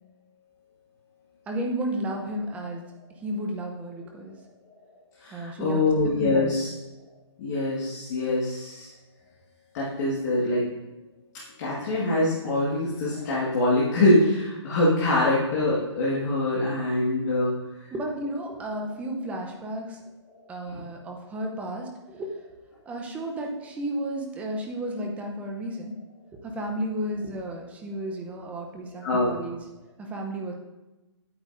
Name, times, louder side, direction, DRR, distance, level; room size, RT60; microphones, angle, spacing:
voice 1, 1.5-2.8 3.2-4.4 5.3-5.8 6.2-6.6 17.9-20.0 20.5-22.3 22.8-26.0 26.4-29.6 30.0-30.5, right 1 dB, 10° right, 1 dB, 0.7 m, -33 dB
voice 2, 5.2-6.7 7.4-8.9 9.7-10.6 11.6-17.5 20.7-20.8 29.0-29.3, left 2 dB, 35° left, -7 dB, 1.8 m, -24 dB
9.5 x 8.7 x 2.6 m, 1.0 s
hypercardioid pair, 155°, 15 cm